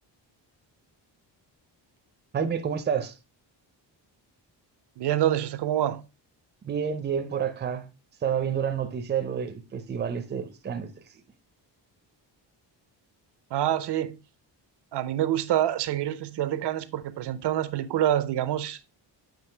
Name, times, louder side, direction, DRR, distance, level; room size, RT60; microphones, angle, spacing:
voice 1, 2.3-3.2 6.6-7.9 8.2-10.9, right 7 dB, 25° right, 0.5 m, -29 dB
voice 2, 5.0-6.0 13.5-14.2 14.9-18.9, right 12 dB, 70° right, 0.6 m, -26 dB
7.8 x 5.1 x 3.2 m
wide cardioid pair, 170°, 43 cm